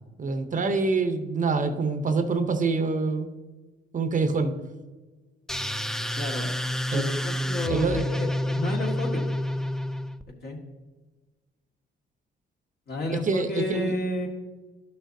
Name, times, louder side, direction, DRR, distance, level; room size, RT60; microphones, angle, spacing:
voice 1, 0.2-3.3 3.9-4.5 6.9-7.0 7.7-8.0 13.2-13.9, right 4 dB, 40° right, 7 dB, 0.8 m, -25 dB
sound 1, 5.5-10.2, equal, ahead, 0.3 m, -29 dB
voice 2, 6.1-6.5 6.9-9.3 10.4-10.6 12.9-14.3, left 2 dB, 55° left, 0 dB, 1.8 m, -31 dB
11.5 x 6.3 x 2.7 m, 1.2 s
cardioid pair, 90°, 20 cm